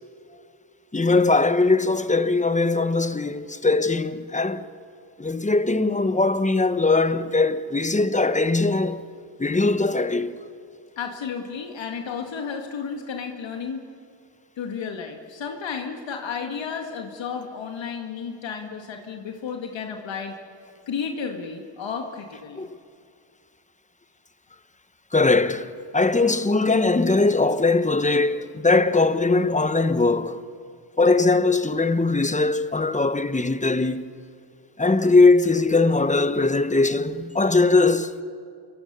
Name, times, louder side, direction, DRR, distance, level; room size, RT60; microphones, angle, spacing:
voice 1, 0.9-4.7 5.2-9.0 9.4-10.4 22.6-22.7 25.1-30.4 31.0-34.1 34.8-38.2, left 3 dB, 15° left, 1.1 m, -20 dB
voice 2, 11.0-13.8 14.6-20.3 20.9-22.7, left 6 dB, 70° left, 2.1 m, -32 dB
28.0 x 23.0 x 6.9 m
cardioid pair, 70°, 46 cm